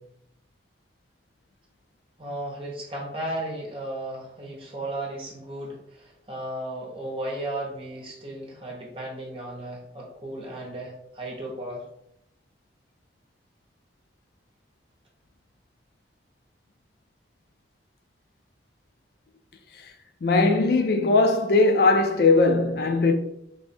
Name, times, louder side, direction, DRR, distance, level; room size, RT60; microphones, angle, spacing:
voice 1, 2.2-11.8, right 1 dB, 30° right, 1.1 m, -35 dB
voice 2, 20.2-23.1, left 3 dB, 55° left, 0.4 m, -20 dB
3.5 x 2.7 x 4.2 m
head